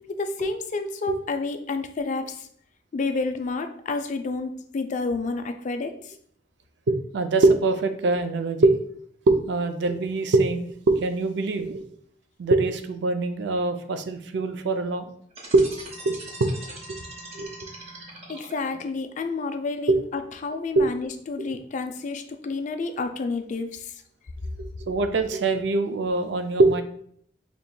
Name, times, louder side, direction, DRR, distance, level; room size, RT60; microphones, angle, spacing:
voice 1, 0.1-2.5 2.9-6.2 18.3-24.0, left 3 dB, 40° left, 7 dB, 0.4 m, -30 dB
voice 2, 6.9-8.8 9.3-11.8 12.4-15.0 15.5-15.7 16.1-16.5 17.3-17.5 19.9-20.0 20.8-20.9 24.9-26.8, right 2 dB, 70° right, 8 dB, 0.4 m, -23 dB
sound 1, 15.3-18.9, right 2 dB, 35° right, 0.7 m, -41 dB
5.2 x 2.9 x 2.2 m, 0.65 s
head